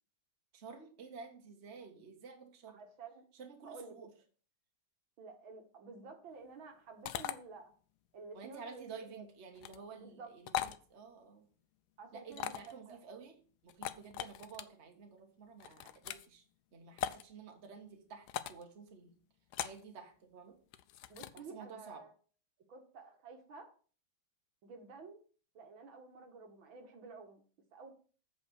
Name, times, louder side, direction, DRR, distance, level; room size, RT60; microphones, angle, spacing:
voice 1, 0.5-2.8 3.3-4.1 8.3-11.5 12.1-13.4 13.6-16.4 16.7-19.2 19.6-20.6 21.3-22.0, right 5 dB, 35° right, 3 dB, 1.5 m, -51 dB
voice 2, 2.7-3.2 3.6-4.1 5.2-7.7 8.1-9.3 9.9-10.4 12.0-13.0 21.1-22.1 22.7-23.7 24.6-25.2 25.5-27.4 27.7-27.9, right 4 dB, 65° right, 5 dB, 2.1 m, -51 dB
sound 1, 7.0-7.3 9.5-9.8 10.5-10.8 12.3-12.7 13.7-14.6 15.6-16.3 17.0-17.2 18.3-18.6 19.5-19.8 20.7-21.4, left 11 dB, 90° left, 0.9 m, -39 dB
8.2 x 5.0 x 6.3 m, 0.40 s
omnidirectional pair, 2.4 m